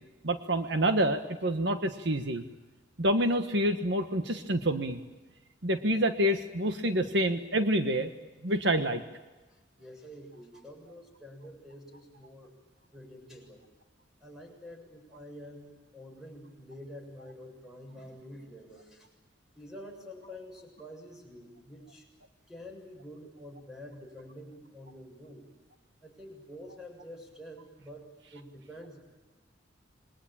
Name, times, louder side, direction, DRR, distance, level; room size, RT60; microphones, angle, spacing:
voice 1, 0.2-2.4 3.0-5.0 5.6-8.1 8.4-9.0, right 1 dB, 65° right, 7 dB, 1.5 m, -27 dB
voice 2, 9.5-12.5 12.9-13.6 14.2-19.1 19.6-22.1 22.5-25.5 26.0-29.0, equal, 5° right, 1 dB, 7.0 m, -48 dB
27.5 x 22.5 x 8.9 m, 1.2 s
head